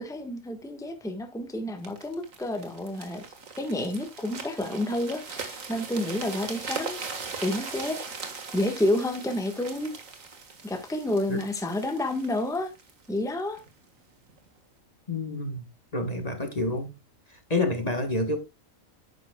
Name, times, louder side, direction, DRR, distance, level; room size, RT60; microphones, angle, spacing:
voice 1, 0.0-3.2 3.6-7.2 7.4-8.0 8.5-9.9 10.6-12.7 13.1-13.6, left 1 dB, 5° left, 1.3 m, -29 dB
sound 1, 1.8-13.7 14.3-14.5, right 4 dB, 80° right, 2.0 m, -40 dB
voice 2, 15.1-15.7 15.9-16.9 17.3-18.4, left 2 dB, 30° left, 1.4 m, -28 dB
10.5 x 9.4 x 2.3 m
omnidirectional pair, 1.4 m